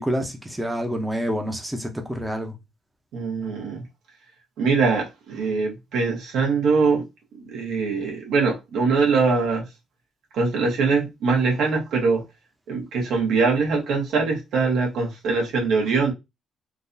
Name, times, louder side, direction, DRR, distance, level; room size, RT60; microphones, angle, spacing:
voice 1, 0.0-2.6, equal, 10° right, 0.8 m, -27 dB
voice 2, 3.1-3.8 4.6-7.0 7.5-9.6 10.3-12.2 12.7-16.1, right 4 dB, 80° right, 1.4 m, -22 dB
3.8 x 2.6 x 2.7 m
cardioid pair, 90°, 0 cm